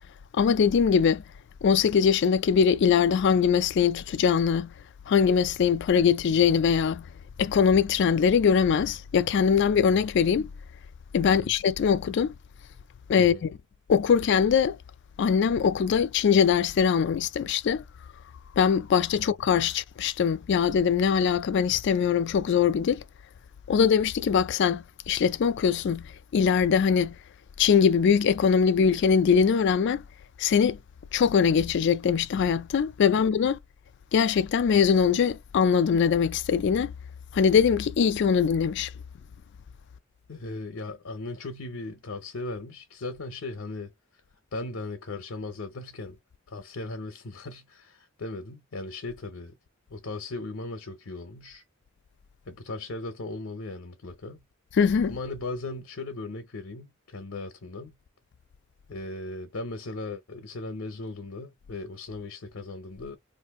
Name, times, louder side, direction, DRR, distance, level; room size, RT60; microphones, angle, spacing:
voice 1, 0.4-1.2 1.6-4.7 5.1-7.0 7.4-10.5 11.1-12.3 13.1-13.3 13.9-14.8 15.2-17.8 18.6-23.0 23.7-26.1 26.3-27.2 27.6-30.0 30.4-30.8 31.1-33.6 34.1-36.9 37.3-38.9 54.8-55.2, left 7 dB, 60° left, 0.3 m, -22 dB
voice 2, 11.2-11.5 13.2-13.5 19.4-19.5 33.2-33.3 40.3-43.9 44.5-46.2 46.5-49.5 49.9-51.6 52.5-54.4 55.1-58.0 58.9-63.2, left 2 dB, 80° left, 0.7 m, -37 dB
2.6 x 2.5 x 3.5 m
head